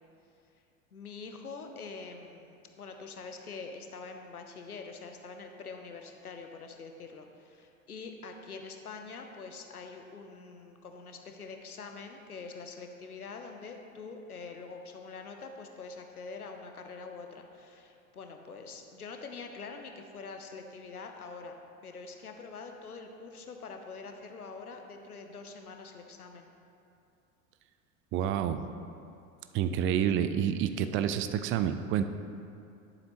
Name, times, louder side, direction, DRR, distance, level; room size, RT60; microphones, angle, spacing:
voice 1, 0.9-21.5 21.8-26.5, left 4 dB, 85° left, 4 dB, 0.8 m, -45 dB
voice 2, 28.1-28.7 29.5-32.0, right 9 dB, 30° right, 10 dB, 0.4 m, -28 dB
12.0 x 7.3 x 3.0 m, 2.6 s
figure-of-eight pair, 80°, 43 cm